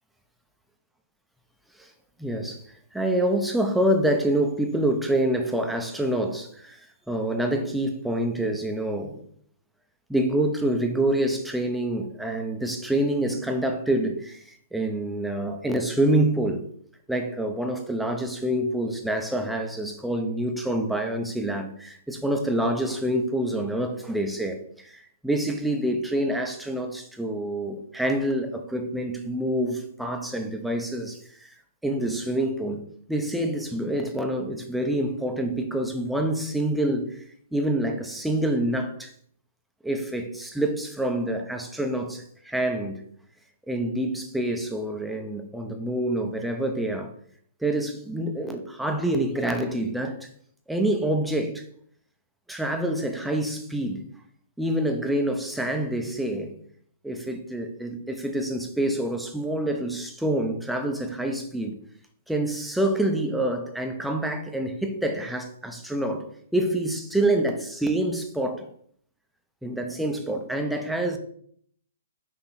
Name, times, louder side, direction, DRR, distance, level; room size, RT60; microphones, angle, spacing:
voice 1, 2.2-2.6 2.9-9.2 10.1-16.7 17.1-31.5 31.8-32.8 33.1-37.2 37.5-39.1 39.8-43.0 43.7-47.1 47.6-50.3 50.7-51.6 52.5-54.1 54.6-56.6 57.0-61.7 62.3-66.3 66.5-68.7 69.6-71.2, right 1 dB, ahead, 0.6 m, -27 dB
5.9 x 3.0 x 5.6 m
hypercardioid pair, 150°, 0 cm